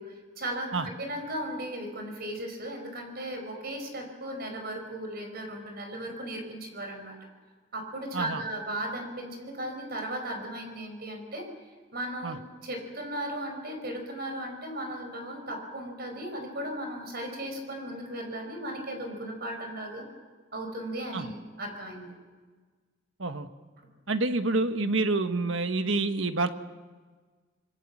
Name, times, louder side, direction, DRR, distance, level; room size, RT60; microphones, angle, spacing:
voice 1, 0.0-7.2 7.7-11.5 11.9-20.0 20.5-22.1, right 1 dB, 50° right, 5 dB, 5.4 m, -36 dB
voice 2, 24.1-26.5, right 3 dB, 70° right, 8 dB, 1.4 m, -27 dB
26.5 x 21.0 x 7.4 m, 1.4 s
head